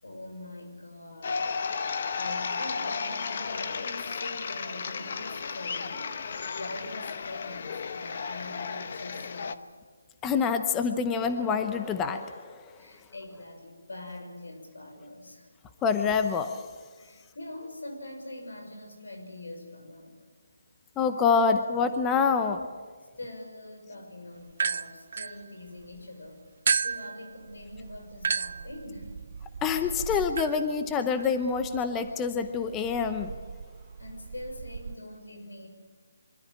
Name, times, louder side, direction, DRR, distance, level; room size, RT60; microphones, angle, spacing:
voice 1, 0.0-1.5 1.8-6.1 6.5-9.7 12.8-15.5 17.0-20.2 23.2-26.4 26.8-29.2 34.0-35.7, left 1 dB, 80° left, 4 dB, 6.2 m, -43 dB
sound 1, 1.2-9.5, left 5 dB, 45° left, 1.0 m, -34 dB
voice 2, 10.2-12.7 15.8-16.7 21.0-22.7 29.6-33.3, left 5 dB, 10° left, 8 dB, 0.7 m, -26 dB
sound 2, 24.5-26.0 26.7-34.9, right 6 dB, 50° right, 0.6 m, -34 dB
24.5 x 13.5 x 9.9 m, 1.5 s
hypercardioid pair, 165°, 0 cm